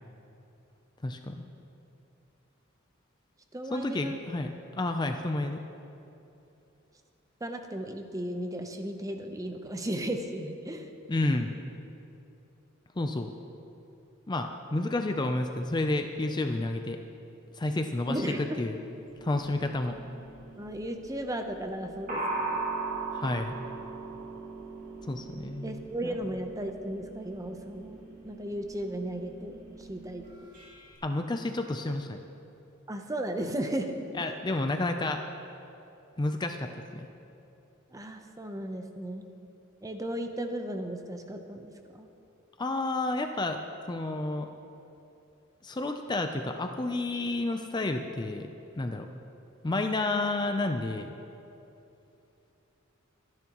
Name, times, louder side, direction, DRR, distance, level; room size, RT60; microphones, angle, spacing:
voice 1, 1.0-1.5 3.7-5.6 11.1-11.6 13.0-13.3 14.3-17.0 17.5-18.8 19.2-19.9 23.1-23.5 25.1-26.2 31.0-32.2 34.1-35.2 36.2-37.1 42.6-43.6 43.9-44.5 45.6-48.5 48.8-49.1 49.6-51.1, left 2 dB, 20° left, 5 dB, 0.5 m, -30 dB
voice 2, 3.5-4.2 7.4-10.9 18.0-18.6 20.6-22.6 25.6-30.2 32.9-33.9 34.2-34.3 37.9-39.2 39.8-42.1, right 1 dB, 15° right, 5 dB, 0.8 m, -35 dB
sound 1, 19.1-30.9, right 3 dB, 45° right, 2.9 m, -40 dB
24.0 x 10.5 x 3.0 m, 2.9 s
head